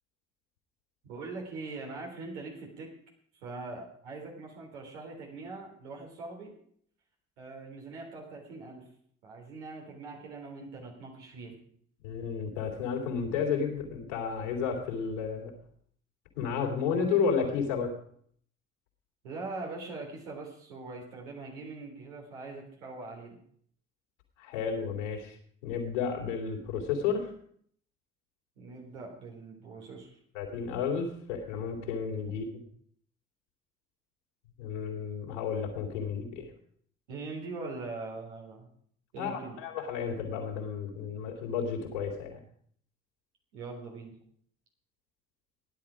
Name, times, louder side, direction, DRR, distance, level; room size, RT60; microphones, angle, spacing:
voice 1, 1.0-2.9 3.3-6.5 7.4-8.9 9.2-11.6 19.2-23.4 28.6-30.1 37.1-38.7 39.1-39.6 43.5-44.1, right 3 dB, 80° right, -1 dB, 3.6 m, -42 dB
voice 2, 12.0-15.5 16.3-17.9 24.4-25.4 25.6-27.3 30.3-32.5 34.6-36.5 39.2-42.4, left 6 dB, 80° left, 0 dB, 3.0 m, -32 dB
15.5 x 11.0 x 5.0 m, 0.62 s
figure-of-eight pair, 45°, 35 cm